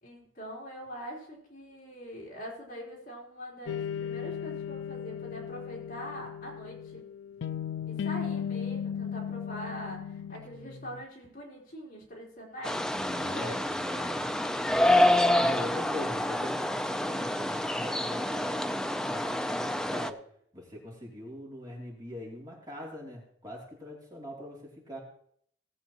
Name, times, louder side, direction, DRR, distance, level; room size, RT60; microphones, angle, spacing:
voice 1, 0.0-7.0 7.9-13.6, equal, 50° left, -3 dB, 3.5 m, -43 dB
sound 1, 3.7-11.0, left 8 dB, 85° left, 0.4 m, -36 dB
sound 2, 12.6-20.1, left 1 dB, 5° left, 0.4 m, -27 dB
voice 2, 12.9-14.3 15.4-18.7 19.1-20.2 20.5-25.0, left 1 dB, 20° right, -3 dB, 2.8 m, -42 dB
18.0 x 7.9 x 2.9 m, 0.65 s
head